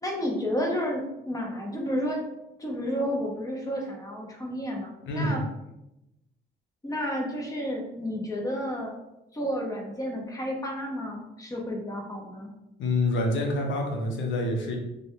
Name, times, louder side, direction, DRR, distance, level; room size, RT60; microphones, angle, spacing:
voice 1, 0.0-2.2 2.6-5.4 6.8-8.9 9.3-12.5, equal, 15° left, 0 dB, 0.7 m, -31 dB
voice 2, 5.1-5.4 12.8-14.8, left 2 dB, 75° left, 1 dB, 0.7 m, -27 dB
3.0 x 2.3 x 2.7 m, 0.91 s
cardioid pair, 90°, 20 cm